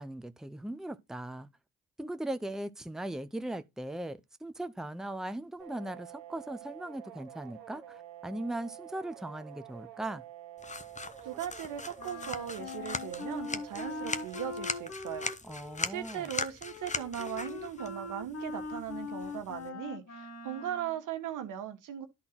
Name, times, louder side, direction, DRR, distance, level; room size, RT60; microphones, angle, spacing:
voice 1, 0.0-1.5 2.0-8.0 8.2-10.2 15.4-16.3, right 1 dB, ahead, 0.8 m, -39 dB
sound 1, 5.6-14.9, right 11 dB, 90° right, 1.1 m, -49 dB
sound 2, 10.6-19.7, left 4 dB, 20° left, 1.0 m, -40 dB
voice 2, 11.2-15.3 15.9-22.1, right 10 dB, 70° right, 1.4 m, -38 dB
Wind instrument woodwind instrument, 12.0-21.0, left 4 dB, 55° left, 1.9 m, -42 dB
11.0 x 3.9 x 5.8 m
hypercardioid pair, 50°, 32 cm